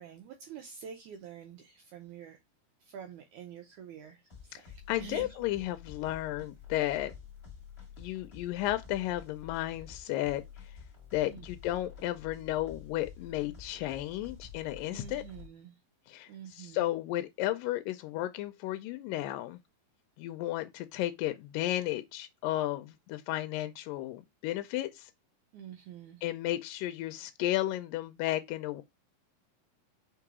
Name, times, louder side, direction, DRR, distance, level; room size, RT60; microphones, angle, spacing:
voice 1, 0.0-2.4 2.9-4.2 4.5-5.3 11.2-11.5 14.9-15.7 16.3-16.9 25.5-26.2, right 7 dB, 75° right, 1.9 m, -47 dB
sound 1, 4.3-15.5, left 7 dB, 20° left, 1.7 m, -49 dB
voice 2, 4.9-7.1 8.0-10.7 11.1-15.2 16.1-19.6 20.2-25.1 26.2-28.8, left 15 dB, 80° left, 2.1 m, -33 dB
5.3 x 3.8 x 4.7 m
omnidirectional pair, 4.2 m